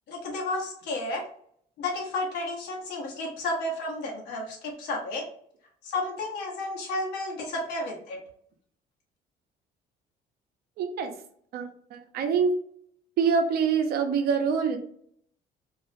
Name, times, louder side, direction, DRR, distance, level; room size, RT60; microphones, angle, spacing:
voice 1, 0.1-1.2 1.8-5.2 5.8-8.2, left 2 dB, 90° left, -1 dB, 0.8 m, -32 dB
voice 2, 10.8-11.1 11.5-12.5 13.2-14.8, right 6 dB, 65° right, 6 dB, 0.5 m, -25 dB
2.4 x 2.0 x 2.5 m, 0.64 s
cardioid pair, 110°, 17 cm